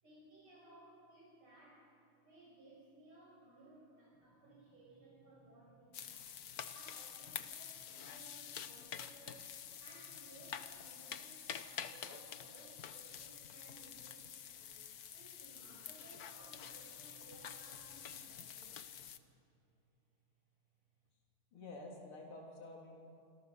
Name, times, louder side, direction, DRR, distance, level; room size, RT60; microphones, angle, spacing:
voice 1, 0.0-1.9 2.2-6.3 6.7-9.5 9.8-14.8 15.1-18.9 19.4-19.5, right 2 dB, 75° right, -5 dB, 7.0 m, -60 dB
sound 1, 4.1-19.2, right 2 dB, 60° right, 5.0 m, -71 dB
sound 2, 5.9-19.2, left 8 dB, 55° left, 1.2 m, -48 dB
voice 2, 21.5-23.0, left 2 dB, 75° left, -1 dB, 4.2 m, -50 dB
26.5 x 26.5 x 6.9 m, 2.6 s
omnidirectional pair, 2.4 m